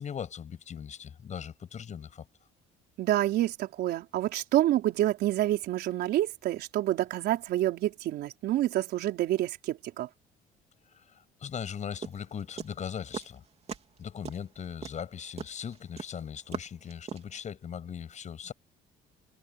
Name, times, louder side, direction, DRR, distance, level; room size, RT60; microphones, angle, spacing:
voice 1, 0.0-2.3 10.9-13.4 14.0-18.5, left 8 dB, 45° left, 7.5 m, -39 dB
voice 2, 3.0-10.1, right 14 dB, 75° right, 4.3 m, -28 dB
sound 1, 12.0-13.4 13.7-14.0 14.2-17.4, right 6 dB, 40° right, 3.3 m, -39 dB
cardioid pair, 110°, 17 cm